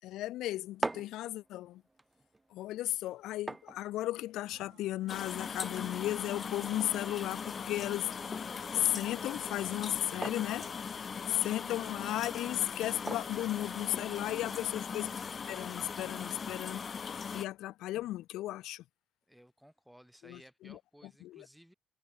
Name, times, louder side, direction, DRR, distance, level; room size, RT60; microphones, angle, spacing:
voice 1, 0.0-1.8 2.5-8.1 8.7-10.7 11.3-15.1 15.5-16.8 17.3-18.8 20.2-20.8 21.2-21.5, left 15 dB, 90° left, 1.5 m, -35 dB
sound 1, 0.5-14.4, right 2 dB, 20° right, 1.7 m, -46 dB
sound 2, 4.4-16.2, right 14 dB, 85° right, 5.3 m, -63 dB
sound 3, 5.1-17.5, left 6 dB, 45° left, 0.5 m, -40 dB
voice 2, 14.2-14.6 19.3-21.7, equal, ahead, 6.0 m, -59 dB
cardioid pair, 90°, 0 cm